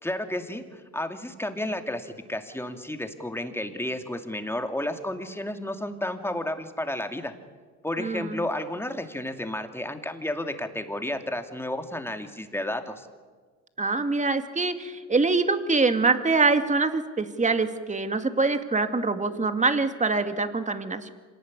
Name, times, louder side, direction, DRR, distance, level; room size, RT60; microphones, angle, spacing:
voice 1, 0.0-7.3 7.8-13.1, left 1 dB, 10° left, 6 dB, 2.6 m, -32 dB
voice 2, 8.0-8.4 13.8-21.1, right 3 dB, 25° right, 8 dB, 2.1 m, -24 dB
26.0 x 18.5 x 9.8 m, 1.4 s
cardioid pair, 90°, 30 cm